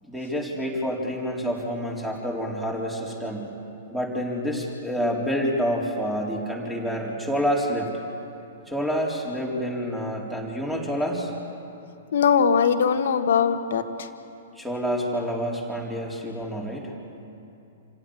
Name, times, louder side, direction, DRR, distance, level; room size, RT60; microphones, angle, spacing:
voice 1, 0.0-3.5 3.9-7.9 8.7-11.3 14.6-16.9, equal, 5° right, -2 dB, 4.1 m, -28 dB
voice 2, 12.1-13.8, left 7 dB, 65° left, 8 dB, 1.5 m, -20 dB
27.5 x 16.5 x 7.4 m, 2.7 s
figure-of-eight pair, 110°, 0 cm